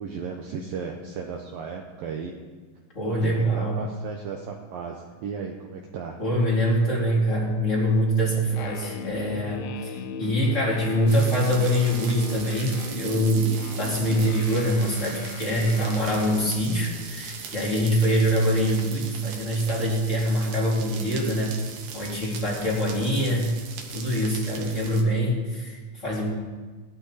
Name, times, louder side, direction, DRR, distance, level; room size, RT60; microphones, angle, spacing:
voice 1, 0.0-2.3 3.0-6.2, right 6 dB, 90° right, 1 dB, 2.0 m, -35 dB
voice 2, 2.9-3.8 6.2-21.6 21.9-23.5 23.9-26.3, equal, 20° left, -4 dB, 2.4 m, -24 dB
sound 1, 8.5-16.5, left 7 dB, 80° left, 3.1 m, -38 dB
sound 2, 11.1-25.0, right 6 dB, 65° right, 3.0 m, -39 dB
19.0 x 14.0 x 4.2 m, 1.4 s
omnidirectional pair, 5.6 m